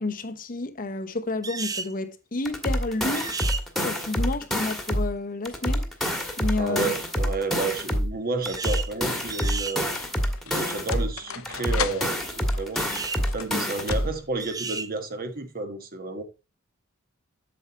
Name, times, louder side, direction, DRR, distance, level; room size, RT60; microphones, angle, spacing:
voice 1, 0.0-3.3 3.8-5.8 6.4-6.9, left 2 dB, 45° left, 0.8 m, -30 dB
sound 1, 1.4-1.9 3.2-3.6 8.4-8.9 9.3-9.8 12.8-13.2 14.4-14.9, right 5 dB, 15° right, 0.5 m, -33 dB
sound 2, 2.4-5.1 5.4-8.1 8.4-11.1 11.4-14.1, equal, ahead, 1.5 m, -27 dB
voice 2, 6.6-9.9 10.4-16.2, right 3 dB, 45° right, 1.3 m, -31 dB
sound 3, 8.0-8.2 9.0-14.5, left 7 dB, 80° left, 0.8 m, -38 dB
8.4 x 7.1 x 2.9 m
head